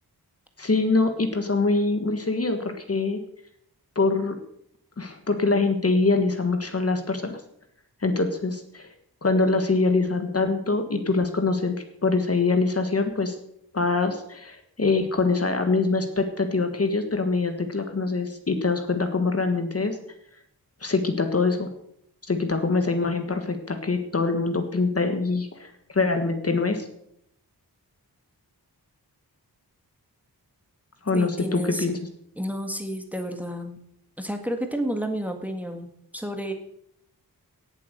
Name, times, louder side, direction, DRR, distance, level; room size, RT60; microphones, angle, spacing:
voice 1, 0.6-3.2 3.9-4.4 5.0-7.4 8.0-8.9 9.2-13.4 13.7-20.0 20.8-21.7 22.3-26.9 31.0-32.0, left 3 dB, 40° left, 6 dB, 1.5 m, -24 dB
voice 2, 31.1-31.9 32.4-33.8 34.2-36.5, equal, 5° right, 5 dB, 1.7 m, -31 dB
17.5 x 7.5 x 6.6 m, 0.74 s
wide cardioid pair, 130°, 39 cm